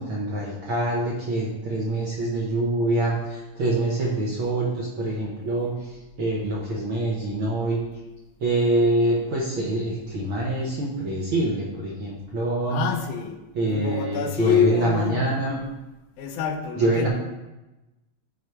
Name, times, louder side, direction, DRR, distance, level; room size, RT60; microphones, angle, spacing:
voice 1, 0.0-7.8 8.4-12.8 13.5-15.6 16.8-17.1, right 2 dB, 60° right, -4 dB, 1.5 m, -25 dB
voice 2, 12.7-15.3 16.2-17.1, left 7 dB, 80° left, 5 dB, 2.1 m, -26 dB
10.0 x 4.1 x 4.7 m, 1.0 s
omnidirectional pair, 3.6 m